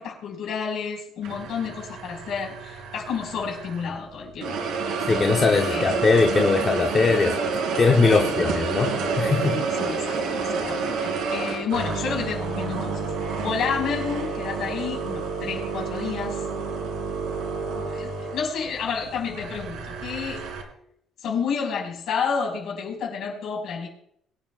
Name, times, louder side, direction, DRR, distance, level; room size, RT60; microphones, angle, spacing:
voice 1, 0.0-4.7 5.7-5.9 8.2-8.5 9.5-13.1 13.4-16.4 17.7-20.5 21.2-23.9, left 6 dB, 55° left, 0 dB, 4.8 m, -30 dB
sound 1, 1.2-4.0 4.4-20.6, right 4 dB, 80° right, 2.6 m, -29 dB
voice 2, 5.1-7.3 7.8-9.6, left 4 dB, 25° left, 1 dB, 0.9 m, -20 dB
23.0 x 10.0 x 2.4 m, 0.71 s
cardioid pair, 165°, 0 cm